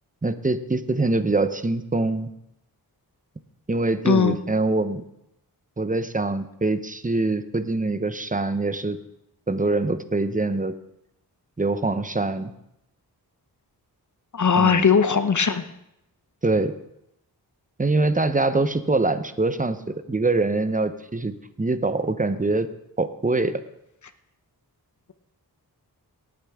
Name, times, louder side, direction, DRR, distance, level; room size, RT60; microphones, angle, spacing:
voice 1, 0.2-2.3 3.7-5.0 5.8-9.0 9.5-10.7 11.6-12.5 14.6-14.8 16.4-16.7 17.8-22.7 23.0-23.6, right 2 dB, 20° right, 11 dB, 0.8 m, -24 dB
voice 2, 4.1-4.4 14.3-15.6, left 6 dB, 50° left, 11 dB, 0.8 m, -19 dB
18.5 x 8.9 x 3.6 m, 0.82 s
wide cardioid pair, 60°, 39 cm